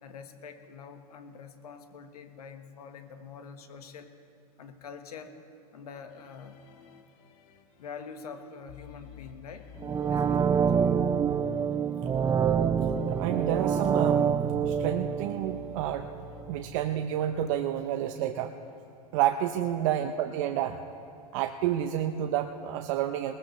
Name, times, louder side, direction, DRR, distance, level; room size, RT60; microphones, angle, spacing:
voice 1, 0.0-4.1 4.6-5.3 5.7-6.6 7.8-9.7 10.0-10.9 19.8-19.9, left 6 dB, 80° left, 7 dB, 1.4 m, -45 dB
sound 1, 6.1-16.4, left 10 dB, 55° left, 1.6 m, -49 dB
sound 2, 9.8-16.6 17.0-17.1, right 7 dB, 15° right, 0.5 m, -27 dB
voice 2, 13.0-14.3 14.7-16.1 16.4-18.5 19.1-20.8 21.3-23.3, right 11 dB, 55° right, 6 dB, 0.7 m, -29 dB
20.0 x 19.0 x 3.2 m, 2.6 s
hypercardioid pair, 105°, 19 cm